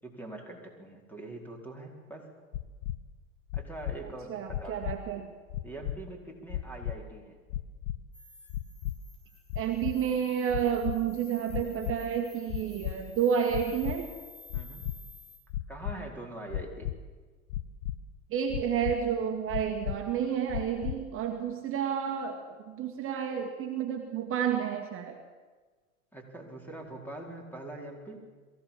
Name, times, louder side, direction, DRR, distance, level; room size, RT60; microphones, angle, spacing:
voice 1, 0.0-2.3 3.5-4.8 5.1-5.2 5.6-7.4 14.5-14.9 15.7-16.9 26.1-28.2, right 2 dB, 5° left, 1 dB, 4.5 m, -43 dB
sound 1, 2.5-3.0 3.5-4.0 4.5-5.0 5.5-6.0 6.5-7.0 7.5-8.0 8.5-8.9 9.5-9.9 10.5-11.0 11.5-12.0 12.5-12.9 13.5-14.0 14.5-15.0 15.5-15.9 16.5-16.9 17.5-18.0 18.5-18.9 19.5-20.0 20.5-21.0, left 14 dB, 50° left, 1.1 m, -33 dB
voice 2, 4.3-5.3 9.6-14.1 18.3-25.2, right 8 dB, 30° right, 3 dB, 2.0 m, -30 dB
sound 2, 8.1-15.4, left 3 dB, 85° left, 6.4 m, -53 dB
22.5 x 16.0 x 7.3 m, 1.4 s
hypercardioid pair, 110°, 41 cm